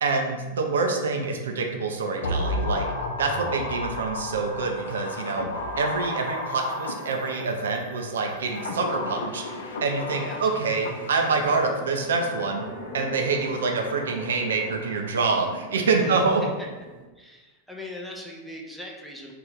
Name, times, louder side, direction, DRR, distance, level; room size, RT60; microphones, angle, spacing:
voice 1, 0.0-2.9 3.2-5.5 5.8-9.4 9.8-12.7 12.9-16.4, right 4 dB, 65° right, 3 dB, 0.4 m, -26 dB
sound 1, 2.2-7.7 8.3-11.6 11.8-11.9, left 1 dB, 65° left, 0.3 m, -32 dB
Organ, 2.5-8.9, right 3 dB, 30° right, 1.0 m, -49 dB
sound 2, 9.0-17.0, equal, 85° right, 0.8 m, -42 dB
voice 2, 10.2-10.5 16.0-16.7 17.2-19.3, left 1 dB, ahead, -2 dB, 0.5 m, -40 dB
2.7 x 2.2 x 3.4 m, 1.2 s
figure-of-eight pair, 90°, 0 cm